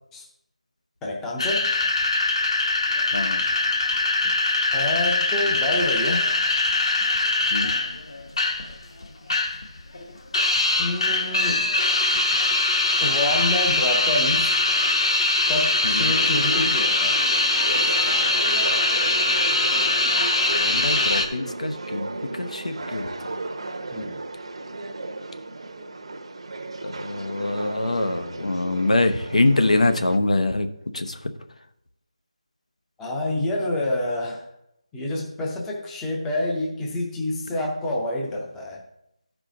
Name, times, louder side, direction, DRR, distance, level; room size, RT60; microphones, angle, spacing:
voice 1, 1.0-1.7 4.2-4.3 4.7-6.3 10.8-11.7 13.0-14.5 15.5-17.2 23.9-24.2 33.0-34.5 34.9-38.8, left 1 dB, 5° left, -2 dB, 0.5 m, -27 dB
sound 1, 1.4-8.7 9.0-9.7 9.9-21.3, left 2 dB, 50° left, 1.0 m, -22 dB
sound 2, 16.1-30.2, right 2 dB, 55° right, 0.7 m, -34 dB
voice 2, 20.6-22.1 22.4-23.1 26.8-30.7 30.9-31.2, left 2 dB, 85° left, 8 dB, 0.9 m, -24 dB
13.0 x 4.9 x 3.8 m, 0.83 s
figure-of-eight pair, 175°, 4 cm